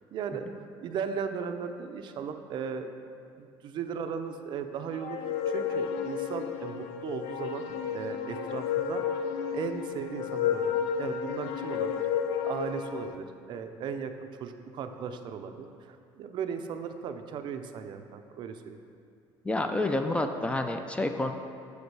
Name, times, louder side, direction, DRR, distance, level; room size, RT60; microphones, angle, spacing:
voice 1, 0.1-0.5 0.8-2.9 3.4-5.2 5.5-10.7 11.0-18.8, right 6 dB, 55° right, 7 dB, 0.4 m, -37 dB
sound 1, 5.0-13.1, left 8 dB, 85° left, 0.4 m, -32 dB
voice 2, 19.4-21.3, left 2 dB, 10° left, 6 dB, 0.4 m, -28 dB
6.4 x 5.1 x 4.7 m, 2.4 s
cardioid pair, 115°, 10 cm